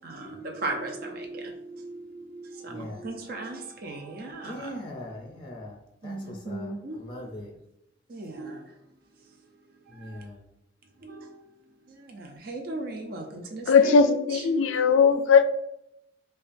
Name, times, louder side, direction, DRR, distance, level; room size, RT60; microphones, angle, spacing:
voice 1, 0.0-4.7 6.0-7.0 8.1-8.8 9.3-9.4 9.9-10.2 11.0-11.6 11.9-14.4, right 2 dB, 50° right, 2 dB, 0.6 m, -37 dB
voice 2, 2.7-3.1 4.4-5.8 6.0-7.5 9.9-10.4, left 1 dB, 25° left, 1 dB, 0.5 m, -40 dB
voice 3, 13.7-15.4, left 5 dB, 80° left, 10 dB, 0.4 m, -19 dB
5.4 x 2.3 x 2.6 m, 0.82 s
head